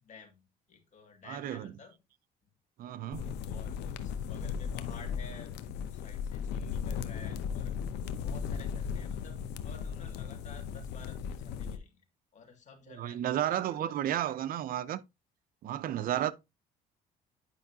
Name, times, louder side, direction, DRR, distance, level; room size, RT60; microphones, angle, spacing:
voice 1, 0.0-2.0 3.1-5.5 5.9-7.7 8.2-12.0 12.3-14.4 16.2-16.3, left 5 dB, 45° left, 2.3 m, -53 dB
voice 2, 1.3-1.7 2.8-3.3 13.0-15.0 15.6-16.3, right 11 dB, 60° right, 0.6 m, -32 dB
sound 1, 3.1-11.8, left 7 dB, 85° left, 0.8 m, -36 dB
9.8 x 5.4 x 2.8 m
cardioid pair, 110°, 17 cm